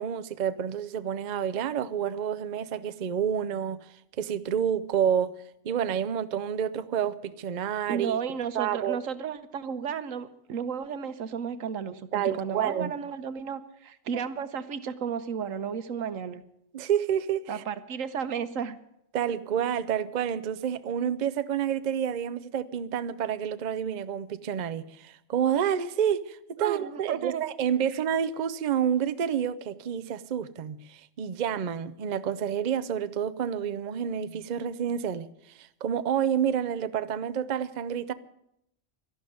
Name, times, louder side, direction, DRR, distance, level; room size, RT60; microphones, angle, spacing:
voice 1, 0.0-3.8 4.2-5.3 5.6-8.2 8.5-9.0 12.1-12.9 14.1-14.2 16.7-17.6 19.1-35.3 35.6-38.1, right 8 dB, 45° right, 0.6 m, -29 dB
voice 2, 7.9-16.4 17.5-18.8 26.6-27.5, right 7 dB, 80° right, 1.3 m, -33 dB
12.5 x 11.5 x 9.3 m
omnidirectional pair, 1.3 m